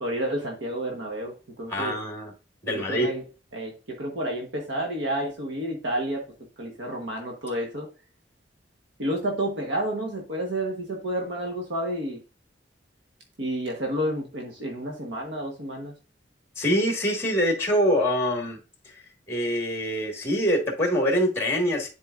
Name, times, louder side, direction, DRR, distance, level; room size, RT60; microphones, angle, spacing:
voice 1, 0.0-1.9 2.7-3.2 3.5-6.2 6.6-7.9 9.0-12.2 13.4-15.9, right 1 dB, 75° right, 0 dB, 1.2 m, -30 dB
voice 2, 1.7-2.3 2.6-3.1 16.6-18.6 19.3-21.9, equal, 15° left, 2 dB, 1.6 m, -24 dB
10.5 x 4.3 x 2.4 m, 0.34 s
head